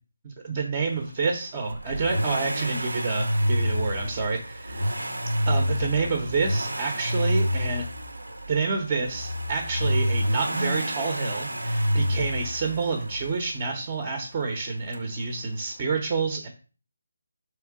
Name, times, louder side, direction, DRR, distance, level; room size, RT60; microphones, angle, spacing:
voice 1, 0.2-4.9 5.5-7.8 8.5-16.5, right 4 dB, 25° right, 4 dB, 0.8 m, -28 dB
Accelerating revving vroom, 1.7-13.6 14.9-15.0, equal, 85° right, 0.7 m, -28 dB
3.5 x 3.2 x 4.7 m, 0.36 s
figure-of-eight pair, 160°, 0 cm